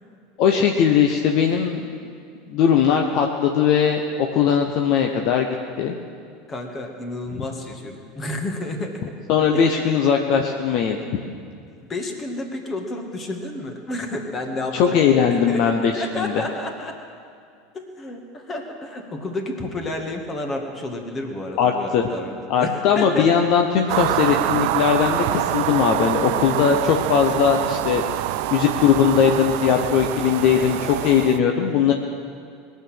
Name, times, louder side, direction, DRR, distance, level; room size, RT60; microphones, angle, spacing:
voice 1, 0.4-1.8 2.5-4.0 4.3-5.5 5.8-6.0 9.3-11.0 14.7-16.3 21.6-22.0 22.5-28.1 28.5-31.9, left 7 dB, 55° left, 3 dB, 0.9 m, -19 dB
voice 2, 6.5-9.2 9.5-9.9 11.9-17.0 17.7-23.5 24.5-24.7 30.6-30.7, left 2 dB, 30° left, 3 dB, 2.2 m, -31 dB
sound 1, 23.9-31.4, right 14 dB, 60° right, 0.4 m, -25 dB
20.5 x 6.9 x 7.9 m, 2.3 s
hypercardioid pair, 80°, 0 cm